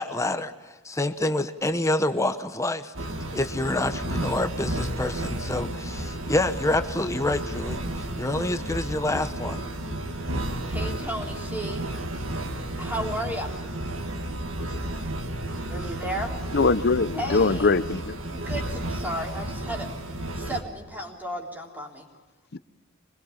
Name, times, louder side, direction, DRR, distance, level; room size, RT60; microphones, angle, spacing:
voice 1, 0.0-2.9 3.3-7.8 8.2-9.6, left 2 dB, 15° left, 0.9 m, -27 dB
sound 1, 2.9-20.6, right 1 dB, 75° right, 2.4 m, -32 dB
voice 2, 10.7-11.8 12.8-13.6 15.7-16.4 17.1-17.7 18.3-19.9 20.4-22.1, equal, 10° right, 3.6 m, -33 dB
voice 3, 16.5-18.2 22.5-22.6, left 4 dB, 55° left, 0.8 m, -22 dB
25.0 x 20.5 x 7.1 m
head